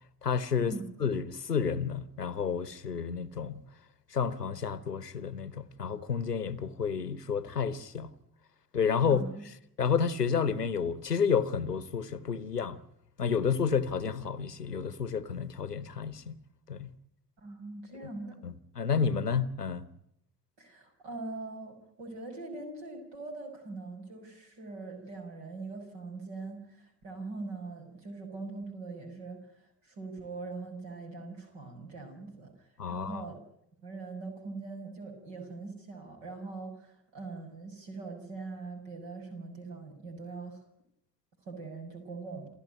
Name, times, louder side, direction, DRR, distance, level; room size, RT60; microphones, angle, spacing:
voice 1, 0.2-0.7 1.0-3.6 4.1-8.1 8.7-9.2 9.8-12.8 13.2-16.4 16.7-16.9 18.4-19.8 32.8-33.2, left 6 dB, 90° left, 0.9 m, -30 dB
voice 2, 9.1-9.4 17.4-18.4 20.6-29.4 29.8-32.5 32.9-33.4 33.8-40.6 41.4-42.5, right 3 dB, 65° right, 6.5 m, -42 dB
28.0 x 14.5 x 9.3 m
figure-of-eight pair, 45°, 46 cm